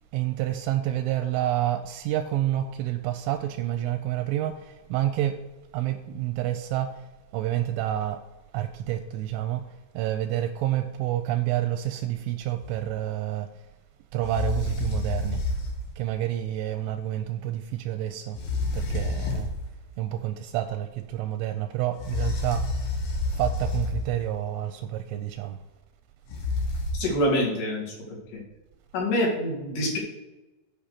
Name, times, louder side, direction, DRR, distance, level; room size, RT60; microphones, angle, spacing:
voice 1, 0.1-5.4 5.7-7.1 7.3-8.2 8.5-13.5 14.1-15.4 16.0-18.4 18.7-19.5 20.0-22.6 23.3-25.6, right 13 dB, 85° right, 8 dB, 2.8 m, -29 dB
sound 1, 12.6-12.8 14.2-15.9 18.3-19.7 22.0-24.3 26.3-26.9, left 2 dB, 80° left, 4.2 m, -29 dB
voice 2, 27.0-28.0 28.3-28.4 28.9-30.0, left 1 dB, 60° left, -4 dB, 3.9 m, -25 dB
8.9 x 5.6 x 6.6 m, 1.1 s
omnidirectional pair, 5.8 m